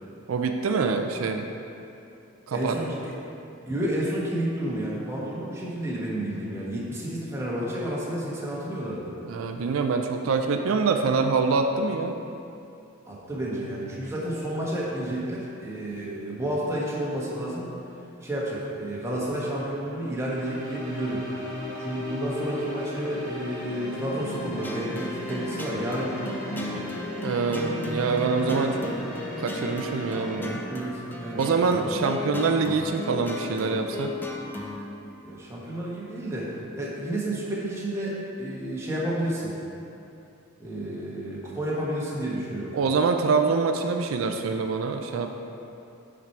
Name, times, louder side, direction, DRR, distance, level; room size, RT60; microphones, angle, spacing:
voice 1, 0.3-1.5 2.5-2.8 9.3-12.2 27.2-29.0 29.4-30.6 31.3-34.1 42.7-45.4, right 4 dB, 80° right, 5 dB, 0.4 m, -25 dB
voice 2, 2.5-3.1 3.7-9.1 13.1-17.7 18.2-21.2 21.8-26.8 30.7-31.4 35.2-39.5 40.6-42.7, right 1 dB, 15° right, -6 dB, 1.1 m, -31 dB
sound 1, 20.1-30.3, left 1 dB, 30° left, 1.7 m, -36 dB
sound 2, 24.6-34.9, left 1 dB, 10° left, 0.4 m, -36 dB
5.9 x 4.6 x 5.7 m, 2.8 s
head